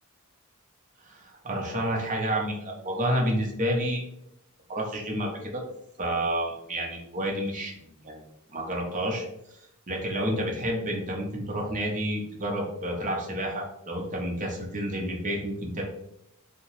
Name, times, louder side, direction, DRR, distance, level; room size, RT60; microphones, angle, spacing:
voice 1, 1.0-4.0 4.7-5.6 6.0-8.2 8.5-9.2 9.9-15.8, right 1 dB, 35° right, 0 dB, 0.6 m, -30 dB
2.8 x 2.1 x 3.0 m, 0.78 s
head